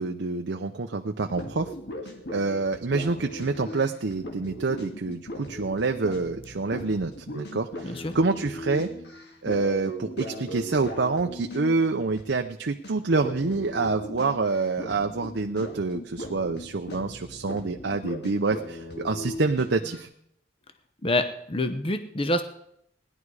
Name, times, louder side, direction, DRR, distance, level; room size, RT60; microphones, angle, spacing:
voice 1, 0.0-1.7 2.3-8.9 9.4-20.1, right 3 dB, 65° right, 5 dB, 0.7 m, -27 dB
sound 1, 1.3-12.5 12.8-12.9 13.2-20.0, left 1 dB, 60° left, 2.0 m, -39 dB
voice 2, 7.8-8.2 21.0-22.4, left 1 dB, 30° left, 9 dB, 0.8 m, -26 dB
17.5 x 11.0 x 4.8 m, 0.73 s
head